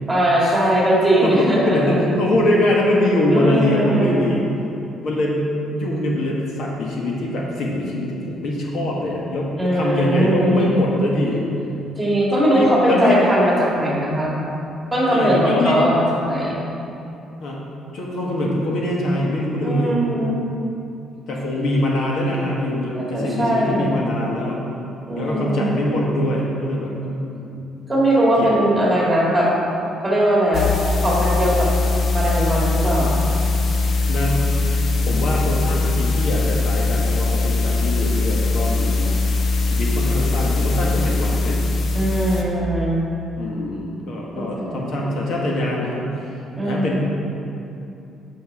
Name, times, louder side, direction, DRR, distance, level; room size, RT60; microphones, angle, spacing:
voice 1, 0.1-2.0 3.3-4.1 9.6-10.6 12.0-14.3 14.9-16.6 19.6-20.4 22.9-24.0 25.1-25.8 27.9-29.5 30.0-30.7 31.0-31.7 32.1-33.2 41.9-43.0 44.3-45.0 46.6-47.0, right 1 dB, 10° right, -5 dB, 2.0 m, -20 dB
voice 2, 1.2-4.4 5.0-11.4 12.5-13.3 15.1-15.8 17.4-17.6 17.9-19.9 21.3-24.6 25.1-27.5 28.4-28.5 34.1-34.5 35.1-39.3 39.6-41.6 43.4-46.1 46.6-47.0, left 1 dB, 60° left, -3 dB, 1.3 m, -23 dB
sound 1, 30.5-42.4, left 3 dB, 40° left, 0.7 m, -21 dB
8.3 x 6.4 x 4.8 m, 2.8 s
cardioid pair, 150°, 0 cm